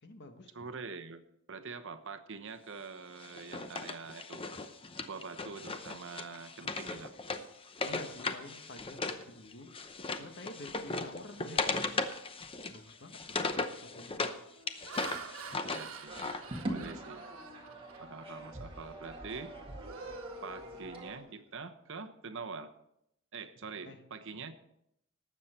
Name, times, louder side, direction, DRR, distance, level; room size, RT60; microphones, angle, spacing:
voice 1, 0.0-0.7 7.8-12.0 12.7-14.3 23.8-24.0, left 2 dB, 55° left, 6 dB, 1.4 m, -50 dB
voice 2, 0.5-4.5 5.0-7.1 11.3-11.6 15.6-16.3 16.7-17.3 18.0-19.5 20.4-22.7 23.3-24.5, right 4 dB, 65° right, 8 dB, 1.0 m, -45 dB
Wood, 3.2-9.2 9.5-14.4 14.7-16.4, left 3 dB, 25° left, 0.7 m, -37 dB
Laughter, 12.7-13.0 13.6-13.9 14.5-18.3 18.8-19.0 19.4-21.3, right 5 dB, 80° right, 1.4 m, -48 dB
sound 1, 16.1-21.2, right 1 dB, 25° right, 1.9 m, -43 dB
18.5 x 7.5 x 4.3 m, 0.79 s
head